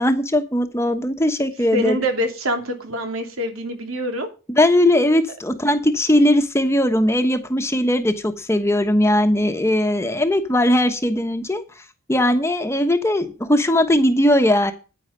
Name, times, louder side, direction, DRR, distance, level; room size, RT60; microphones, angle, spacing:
voice 1, 0.0-2.0 4.6-11.6 12.1-14.7, left 1 dB, 15° left, 1.2 m, -19 dB
voice 2, 1.7-4.3, equal, 80° right, 3.0 m, -25 dB
9.9 x 9.6 x 5.2 m
head